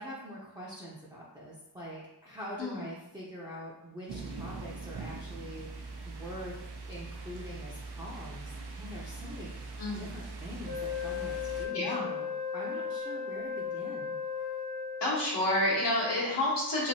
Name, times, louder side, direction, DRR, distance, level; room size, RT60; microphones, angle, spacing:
voice 1, 0.0-6.6 6.9-9.5 9.9-14.1, equal, 10° right, -6 dB, 0.5 m, -44 dB
sound 1, 4.1-11.7, right 3 dB, 70° right, 0.5 m, -42 dB
voice 2, 9.8-10.1 11.7-12.1 15.0-16.9, left 1 dB, 80° left, -6 dB, 1.2 m, -29 dB
Wind instrument woodwind instrument, 10.6-15.4, left 7 dB, 40° left, 0.8 m, -36 dB
2.9 x 2.6 x 2.7 m, 0.91 s
wide cardioid pair, 65°, 42 cm